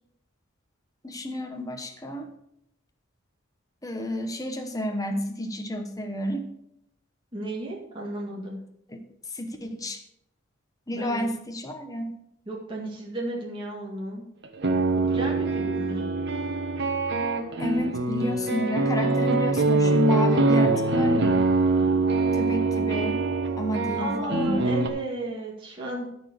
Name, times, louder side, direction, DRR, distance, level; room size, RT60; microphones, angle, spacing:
voice 1, 1.0-2.3 3.8-6.5 8.9-9.0 9.3-10.0 10.9-12.1 17.6-21.4 22.3-23.2 23.6-24.6, left 1 dB, 15° left, 4 dB, 1.0 m, -31 dB
voice 2, 7.3-8.6 10.9-11.3 12.5-14.2 15.1-16.0 24.0-26.1, right 2 dB, 25° right, -4 dB, 2.0 m, -34 dB
sound 1, 14.4-24.9, right 3 dB, 55° right, 1.2 m, -24 dB
13.5 x 4.6 x 6.7 m, 0.76 s
head